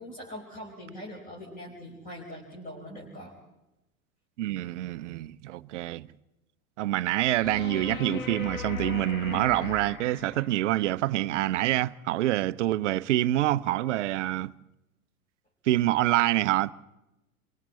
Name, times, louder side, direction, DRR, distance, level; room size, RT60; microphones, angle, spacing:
voice 1, 0.0-3.3, equal, 20° left, 4.4 m, -42 dB
voice 2, 4.4-6.1 6.8-14.5 15.7-16.7, right 15 dB, 55° right, 0.7 m, -26 dB
sound 1, 7.4-10.8 13.4-13.5, left 6 dB, 65° left, 2.0 m, -37 dB
29.5 x 24.0 x 4.2 m
figure-of-eight pair, 85°, 44 cm